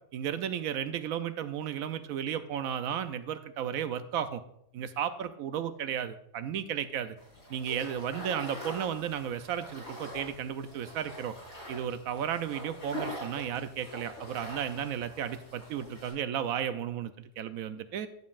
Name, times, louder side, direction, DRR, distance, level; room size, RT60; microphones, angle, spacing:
voice 1, 0.1-4.4 4.7-7.2 7.5-11.3 11.7-17.1 17.4-18.1, right 9 dB, 85° right, 11 dB, 1.0 m, -34 dB
sound 1, 7.2-16.1, equal, 80° left, 4.4 m, -43 dB
11.5 x 7.3 x 2.4 m, 0.74 s
omnidirectional pair, 1.5 m